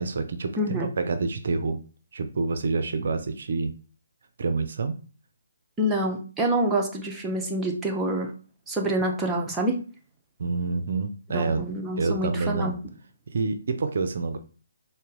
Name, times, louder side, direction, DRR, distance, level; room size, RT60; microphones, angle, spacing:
voice 1, 0.0-1.8 2.1-3.7 4.4-5.0 10.4-12.7 13.3-14.4, right 4 dB, 60° right, 9 dB, 0.4 m, -27 dB
voice 2, 5.8-8.3 8.7-9.8 11.3-12.7, right 1 dB, 10° right, 0 dB, 0.6 m, -26 dB
3.9 x 2.0 x 3.6 m, 0.37 s
figure-of-eight pair, 140°, 0 cm